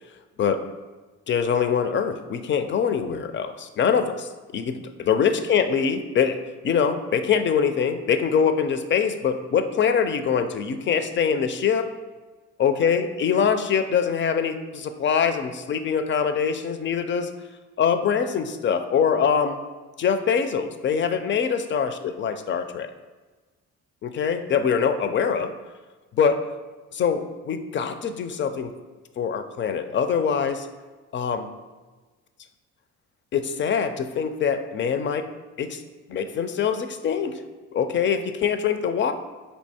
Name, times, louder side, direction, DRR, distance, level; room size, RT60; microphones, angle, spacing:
voice 1, 1.3-6.4 6.6-11.9 12.6-17.3 17.8-19.6 20.0-22.9 24.0-25.5 26.1-26.4 26.9-28.7 29.2-30.7 31.1-31.5 33.3-35.3 35.6-35.8 36.1-37.4 37.7-39.1, left 7 dB, 40° left, 9 dB, 0.4 m, -23 dB
4.5 x 2.8 x 4.2 m, 1.3 s
cardioid pair, 90°, 30 cm